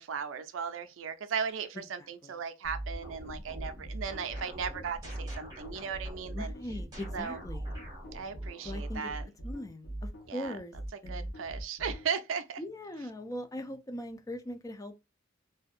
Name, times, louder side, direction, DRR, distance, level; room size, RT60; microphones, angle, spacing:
voice 1, 0.0-6.5 7.1-7.4 8.1-9.2 10.3-10.6 11.1-12.6, right 6 dB, 90° right, 0.4 m, -36 dB
voice 2, 1.7-2.4 6.3-7.8 8.6-9.1 9.4-10.7 11.0-11.3 12.6-15.0, left 1 dB, 15° left, 0.3 m, -41 dB
sound 1, 2.6-12.1, right 1 dB, 70° left, 0.8 m, -40 dB
sound 2, 2.8-9.0, equal, 20° right, 0.9 m, -47 dB
2.6 x 2.2 x 2.4 m
head